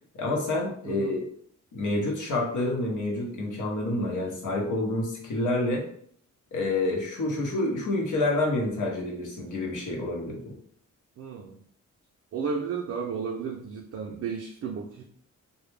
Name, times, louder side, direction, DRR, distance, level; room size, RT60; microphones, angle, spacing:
voice 1, 0.1-1.2 1.7-5.8 6.5-10.5, left 2 dB, 70° left, 0 dB, 0.8 m, -28 dB
voice 2, 11.2-11.6 12.3-15.0, right 5 dB, 55° right, 0 dB, 0.4 m, -33 dB
2.2 x 2.1 x 3.1 m, 0.62 s
cardioid pair, 90°, 31 cm